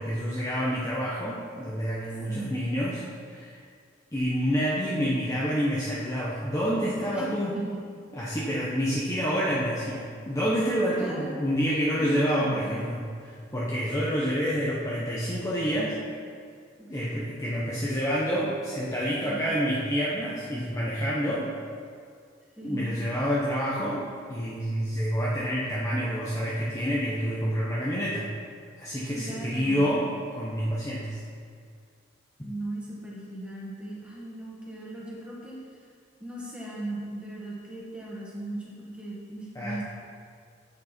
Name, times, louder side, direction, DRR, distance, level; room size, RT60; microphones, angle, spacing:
voice 1, 0.0-3.6 4.1-7.6 8.1-16.0 16.9-21.5 22.6-28.3 28.8-30.1 30.4-31.2 39.5-39.8, equal, 15° left, -7 dB, 0.8 m, -28 dB
voice 2, 7.1-7.7 10.7-11.3 11.9-12.7 16.8-16.9 17.5-17.8 19.2-19.5 22.6-22.9 29.1-29.9 32.4-35.5 36.2-39.8, right 1 dB, 5° right, -5 dB, 1.6 m, -38 dB
7.9 x 6.7 x 4.4 m, 2.2 s
head